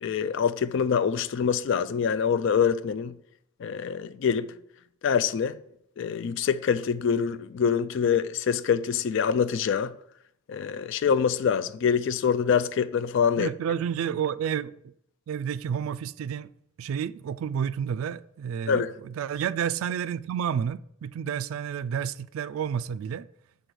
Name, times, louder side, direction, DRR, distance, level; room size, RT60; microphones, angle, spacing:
voice 1, 0.0-3.2 3.6-4.5 5.0-5.6 6.0-9.9 10.5-13.5 18.7-18.9, left 7 dB, 60° left, 0.3 m, -25 dB
voice 2, 13.4-14.9 15.3-16.5 16.8-23.3, right 8 dB, 80° right, 0.3 m, -30 dB
6.8 x 4.0 x 6.2 m
head